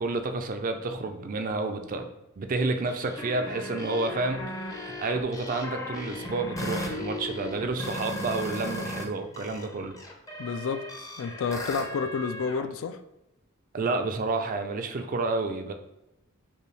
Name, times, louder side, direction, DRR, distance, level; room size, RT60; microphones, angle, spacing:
voice 1, 0.0-2.1 2.4-9.9 13.7-15.7, right 3 dB, 40° right, 0.4 m, -30 dB
sound 1, 2.8-9.0 9.3-12.6, left 1 dB, 15° left, 0.5 m, -36 dB
voice 2, 10.4-13.0, left 5 dB, 65° left, 0.3 m, -30 dB
5.2 x 2.3 x 3.2 m
head